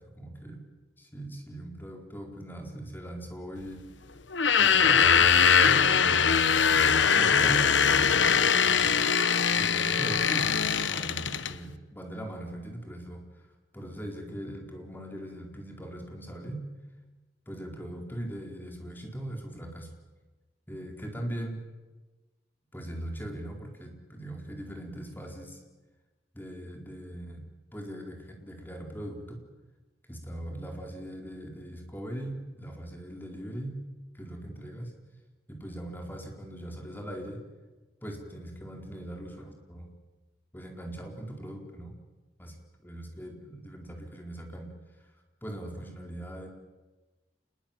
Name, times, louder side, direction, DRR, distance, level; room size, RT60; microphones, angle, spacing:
voice 1, 0.2-0.6 1.0-3.8 4.6-9.0 9.6-13.2 13.7-16.6 17.5-19.9 20.7-21.6 22.7-25.6 26.3-27.4 27.7-29.4 30.1-33.8 34.1-34.9 35.5-37.4 38.0-39.9 40.5-42.0 42.4-42.5 42.8-44.7 45.4-46.5, right 1 dB, 10° left, 2 dB, 4.4 m, -40 dB
sound 1, 4.3-11.5, left 7 dB, 85° left, 1.1 m, -22 dB
27.5 x 21.5 x 8.9 m, 1.2 s
head